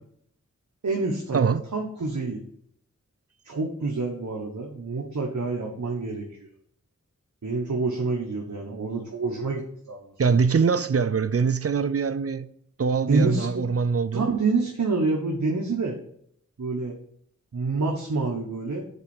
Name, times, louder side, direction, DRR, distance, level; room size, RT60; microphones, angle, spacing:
voice 1, 0.8-2.4 3.4-6.3 7.4-10.1 13.1-13.6 14.1-16.0 16.6-17.0 17.5-18.8, right 3 dB, 80° right, 1.4 m, -27 dB
voice 2, 10.2-12.5 12.8-14.3, right 5 dB, 50° right, 0.5 m, -23 dB
8.2 x 4.5 x 7.1 m
wide cardioid pair, 60°, 30 cm